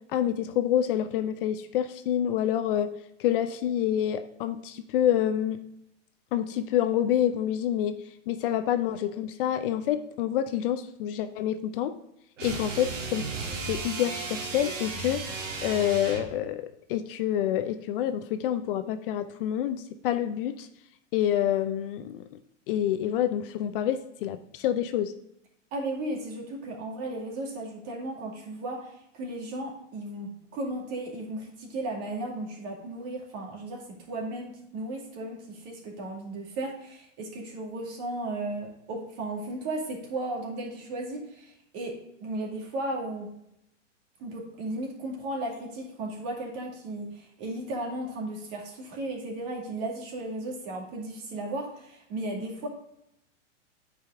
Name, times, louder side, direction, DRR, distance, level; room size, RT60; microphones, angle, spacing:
voice 1, 0.1-2.9 3.2-5.6 6.3-7.9 8.3-11.9 12.4-13.4 13.7-15.2 15.6-20.7 21.1-22.4 22.7-25.1, left 10 dB, 50° left, 9 dB, 0.6 m, -27 dB
sound 1, 12.4-16.4, right 4 dB, 85° right, 1.8 m, -35 dB
voice 2, 25.7-42.0 42.2-43.3 44.2-52.7, right 2 dB, 40° right, 0 dB, 2.3 m, -35 dB
8.8 x 5.0 x 3.7 m, 0.79 s
hypercardioid pair, 135°, 37 cm